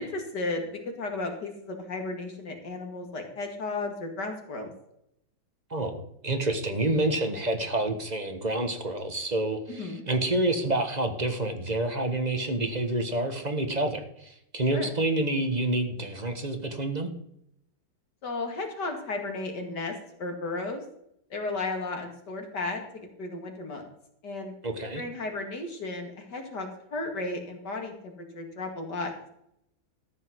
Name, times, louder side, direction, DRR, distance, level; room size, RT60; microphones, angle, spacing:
voice 1, 0.0-4.7 9.7-10.0 14.7-14.9 18.2-20.8 21.3-23.9 24.2-24.5 24.9-29.1, left 2 dB, 60° left, 3 dB, 2.9 m, -34 dB
voice 2, 5.7-17.1 24.6-25.0, right 2 dB, 25° right, 6 dB, 1.4 m, -28 dB
14.0 x 5.5 x 7.8 m, 0.75 s
omnidirectional pair, 2.1 m